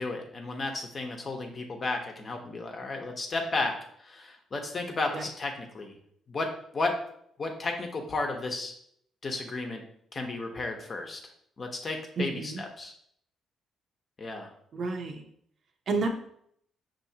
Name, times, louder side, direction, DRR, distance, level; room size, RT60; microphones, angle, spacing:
voice 1, 0.0-6.0 6.3-6.5 6.7-7.0 7.4-8.7 9.2-9.8 10.1-11.2 11.6-12.9 14.2-14.5, left 3 dB, 40° left, 3 dB, 0.8 m, -33 dB
voice 2, 12.2-12.6 14.7-15.2 15.9-16.1, right 3 dB, 60° right, 4 dB, 0.6 m, -30 dB
5.6 x 2.7 x 2.8 m, 0.69 s
cardioid pair, 90°, 0 cm